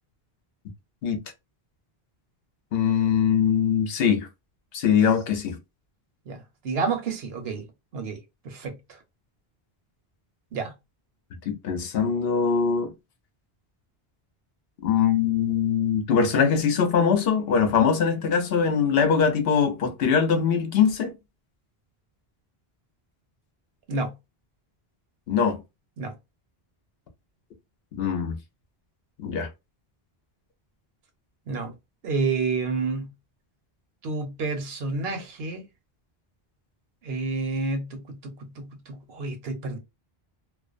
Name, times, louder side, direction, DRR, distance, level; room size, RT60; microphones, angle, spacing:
voice 1, 2.7-4.3 4.7-5.6 11.5-12.9 14.8-21.1 25.3-25.6 28.0-28.4 29.2-29.5, left 7 dB, 75° left, 0.8 m, -22 dB
voice 2, 6.3-7.6 7.9-8.2 8.4-8.7 10.5-10.7 23.9-24.1 26.0-26.1 31.5-31.7 32.0-33.1 34.0-35.7 37.0-39.8, right 4 dB, 80° right, 0.9 m, -29 dB
2.4 x 2.1 x 2.4 m
omnidirectional pair, 1.0 m